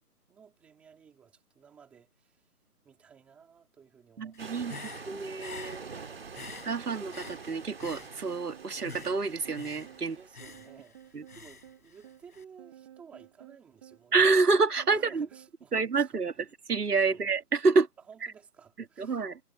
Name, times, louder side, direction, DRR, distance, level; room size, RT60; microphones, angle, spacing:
voice 1, 0.3-2.5 2.8-5.2 6.0-6.5 10.0-14.2 14.9-16.2 17.1-17.2 18.1-19.2, right 7 dB, 5° right, 2.6 m, -55 dB
voice 2, 4.2-4.8 5.0-5.8 6.6-10.2 11.1-11.2 14.1-15.3 15.7-17.9 19.0-19.4, right 4 dB, 80° right, 2.6 m, -27 dB
Human voice / Breathing, 4.3-8.5 8.8-12.4, left 5 dB, 70° left, 6.6 m, -48 dB
rough inconsistent waves, 4.4-10.7, right 5 dB, 40° right, 2.5 m, -46 dB
sound 1, 7.2-15.6, right 11 dB, 20° right, 7.8 m, -54 dB
hypercardioid pair, 175°, 46 cm